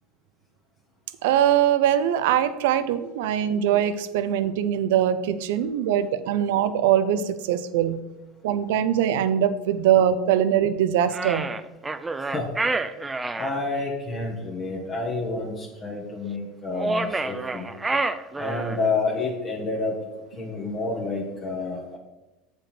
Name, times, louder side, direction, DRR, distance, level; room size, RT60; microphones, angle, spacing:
voice 1, 1.2-8.0 8.4-11.5, right 10 dB, 80° right, 13 dB, 0.5 m, -22 dB
sound 1, 11.1-13.5 16.7-18.9, right 3 dB, 15° right, 0.4 m, -28 dB
voice 2, 13.3-17.7 18.4-20.0 20.4-22.0, left 3 dB, 40° left, -3 dB, 1.4 m, -29 dB
7.3 x 5.2 x 4.4 m, 1.0 s
supercardioid pair, 95°, 0 cm